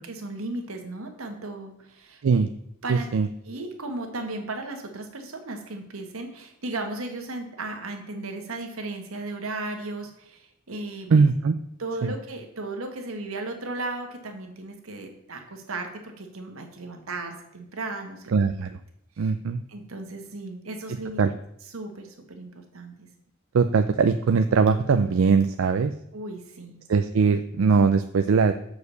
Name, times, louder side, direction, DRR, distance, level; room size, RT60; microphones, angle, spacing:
voice 1, 0.1-2.2 2.8-3.1 3.4-11.3 11.8-18.4 19.2-19.3 19.7-21.2 21.7-23.1 26.1-26.8, right 2 dB, 85° right, 4 dB, 1.5 m, -35 dB
voice 2, 2.9-3.3 11.1-11.5 12.0-12.1 18.3-18.7 19.2-19.6 21.2-21.3 23.5-25.9 26.9-28.5, right 5 dB, 70° right, 9 dB, 0.4 m, -21 dB
6.6 x 4.8 x 6.8 m, 0.75 s
head